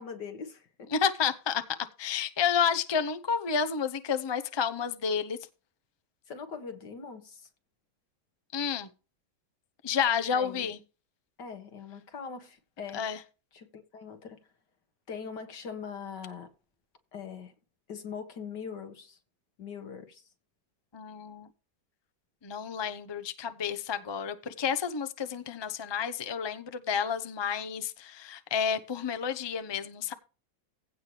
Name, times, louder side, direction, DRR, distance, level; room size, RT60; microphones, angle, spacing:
voice 1, 0.0-0.9 6.3-7.5 10.3-10.7 11.4-13.1 13.5-14.4 15.1-16.5 17.1-17.5 17.9-19.2 19.6-20.3, left 6 dB, 75° left, 2.3 m, -42 dB
voice 2, 0.9-1.6 2.0-5.4 8.5-8.9 9.8-10.8 12.9-13.2 20.9-21.5 22.4-30.1, left 7 dB, 45° left, 0.3 m, -30 dB
16.0 x 5.8 x 3.3 m
omnidirectional pair, 1.9 m